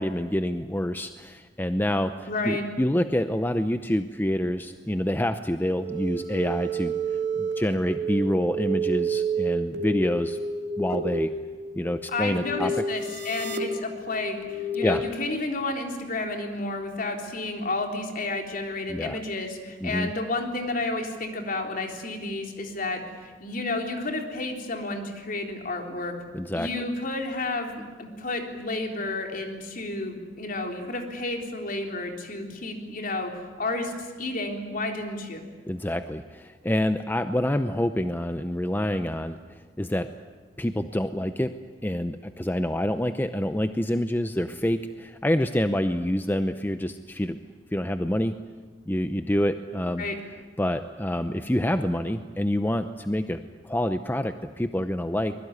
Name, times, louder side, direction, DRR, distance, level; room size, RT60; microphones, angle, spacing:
voice 1, 0.0-6.9 7.4-10.4 10.8-11.3 11.7-12.7 14.8-15.0 18.9-19.2 19.8-20.1 26.3-26.7 35.7-40.1 40.6-41.5 41.8-47.4 47.7-48.4 48.9-50.0 50.6-55.3, left 1 dB, 10° left, 9 dB, 0.7 m, -27 dB
voice 2, 2.3-2.7 12.1-26.1 26.6-33.9 34.2-35.4 50.0-50.2, left 2 dB, 50° left, 3 dB, 3.7 m, -31 dB
sound 1, 5.8-14.9, right 3 dB, 70° right, 2.4 m, -30 dB
24.0 x 21.5 x 9.6 m, 1.4 s
head